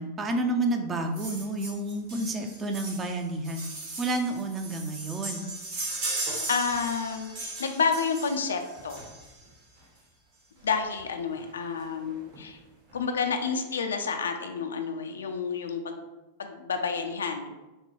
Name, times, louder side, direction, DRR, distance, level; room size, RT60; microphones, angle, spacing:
voice 1, 0.0-3.6 4.0-5.5, right 2 dB, 20° right, 5 dB, 0.5 m, -30 dB
sound 1, 1.1-9.5 10.6-10.7 11.0-11.1 11.3-11.5 11.8-12.4 12.9-13.0, right 2 dB, 50° right, 1.4 m, -37 dB
voice 2, 6.5-9.0 10.6-12.6 12.9-16.1 16.4-17.5, left 5 dB, 70° left, 6 dB, 0.4 m, -29 dB
6.2 x 2.2 x 3.1 m, 1.1 s
figure-of-eight pair, 90°, 0 cm